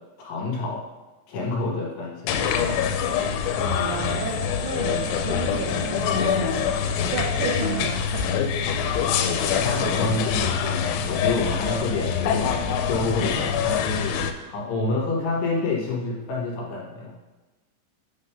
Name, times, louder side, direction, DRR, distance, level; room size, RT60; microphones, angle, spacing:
voice 1, 0.2-0.8 1.3-3.0 9.6-12.6 12.9-17.1, left 3 dB, 70° left, -2 dB, 3.0 m, -28 dB
sound 1, 2.3-14.3, left 7 dB, 85° left, 3.0 m, -25 dB
voice 2, 3.6-6.7 7.0-8.3, right 5 dB, 90° right, -3 dB, 3.3 m, -32 dB
9.1 x 3.8 x 5.4 m, 1.2 s
omnidirectional pair, 5.3 m